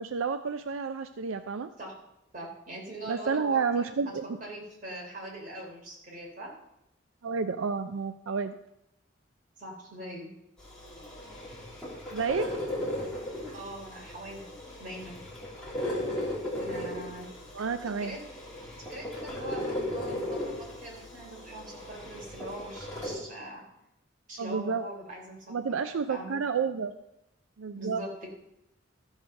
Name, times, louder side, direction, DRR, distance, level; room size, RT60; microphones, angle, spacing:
voice 1, 0.0-1.7 3.1-4.4 7.2-8.6 12.1-12.5 17.5-18.2 24.4-24.8 25.5-26.9 27.6-28.0, right 5 dB, 85° right, 9 dB, 0.5 m, -30 dB
voice 2, 2.3-3.9 4.4-6.5 9.6-10.3 13.5-14.5 14.8-15.2 16.5-17.3 18.0-18.2 18.9-23.6 24.3-25.5 26.1-26.4 27.8-28.3, right 1 dB, 40° right, -3 dB, 3.3 m, -42 dB
sound 1, 10.6-23.1, left 1 dB, 5° left, 2.7 m, -37 dB
13.5 x 4.8 x 6.4 m, 0.86 s
head